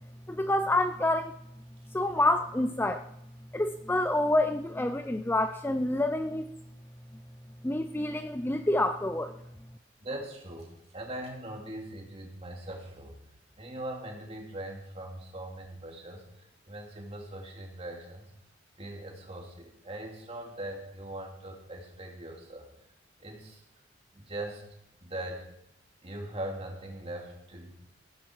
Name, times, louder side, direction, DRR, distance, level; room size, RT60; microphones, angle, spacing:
voice 1, 0.3-1.3 1.9-3.0 3.5-6.5 7.6-9.3, left 1 dB, 10° left, 8 dB, 0.4 m, -27 dB
voice 2, 10.0-13.2 13.6-18.2 18.8-22.7 23.2-23.6 24.1-24.7 25.0-25.5 26.0-27.7, right 1 dB, 30° right, 0 dB, 2.8 m, -41 dB
16.0 x 12.0 x 4.7 m, 0.79 s
head